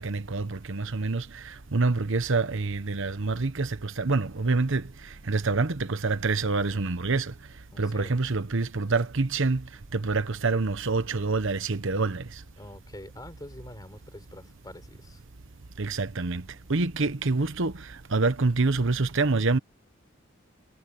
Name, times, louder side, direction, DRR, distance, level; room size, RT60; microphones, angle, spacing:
voice 1, 0.0-4.8 5.3-7.3 7.8-9.6 9.9-12.2 15.8-16.4 16.7-19.6, right 3 dB, 65° right, 1.0 m, -26 dB
voice 2, 7.7-8.2 12.6-15.2, left 1 dB, 20° left, 6.2 m, -45 dB
head